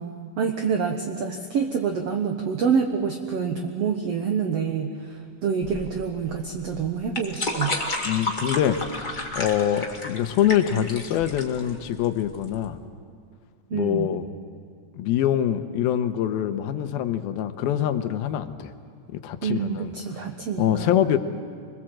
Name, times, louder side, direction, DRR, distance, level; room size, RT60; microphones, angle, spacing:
voice 1, 0.0-7.7 13.7-14.1 19.4-21.0, right 6 dB, 70° right, 4 dB, 1.5 m, -27 dB
sound 1, 5.6-12.7, left 1 dB, 20° left, 1.4 m, -32 dB
voice 2, 8.0-9.0 9.4-12.8 13.7-14.3 14.9-18.7 19.1-19.9 20.6-21.2, left 10 dB, 80° left, 9 dB, 2.7 m, -24 dB
26.5 x 21.5 x 7.6 m, 2.3 s
omnidirectional pair, 4.4 m